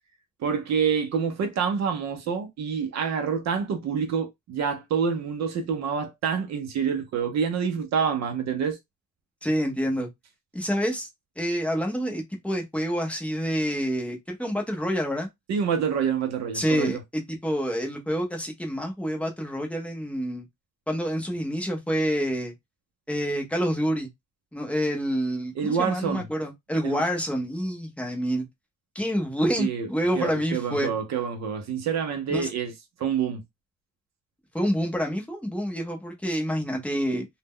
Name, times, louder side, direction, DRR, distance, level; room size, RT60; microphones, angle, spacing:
voice 1, 0.4-8.8 15.5-17.0 25.6-26.3 26.8-27.0 29.6-29.9 30.1-32.7 33.0-33.4, right 6 dB, 60° right, 0.5 m, -27 dB
voice 2, 9.4-10.1 10.5-11.1 11.4-15.3 16.5-20.4 20.9-22.5 23.1-24.1 24.5-28.4 28.9-30.9 32.3-32.5 34.5-37.3, equal, 5° left, 0.5 m, -27 dB
2.0 x 2.0 x 3.5 m
cardioid pair, 180°, 31 cm